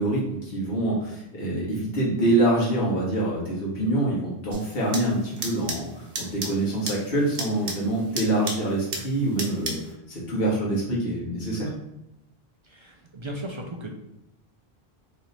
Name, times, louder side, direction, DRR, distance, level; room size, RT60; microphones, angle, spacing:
voice 1, 0.0-9.8 10.1-11.7, right 1 dB, 65° left, -6 dB, 1.4 m, -25 dB
sound 1, 4.5-9.9, right 3 dB, 65° right, 1.0 m, -35 dB
voice 2, 12.6-13.9, right 1 dB, 50° right, 0 dB, 0.3 m, -36 dB
3.2 x 2.9 x 3.9 m, 0.86 s
omnidirectional pair, 1.1 m